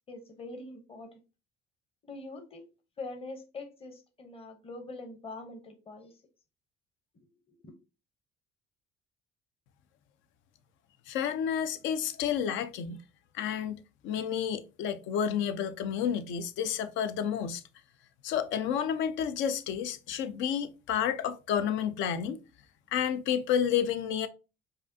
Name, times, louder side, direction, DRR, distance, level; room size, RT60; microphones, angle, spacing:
voice 1, 0.1-1.2 2.0-2.7 3.0-6.2 7.5-7.7, left 2 dB, 30° left, 0.8 m, -44 dB
voice 2, 11.1-13.0 13.3-17.6 18.2-22.4 22.9-24.3, left 8 dB, 75° left, 0.5 m, -30 dB
4.8 x 2.4 x 2.6 m
cardioid pair, 85°, 20 cm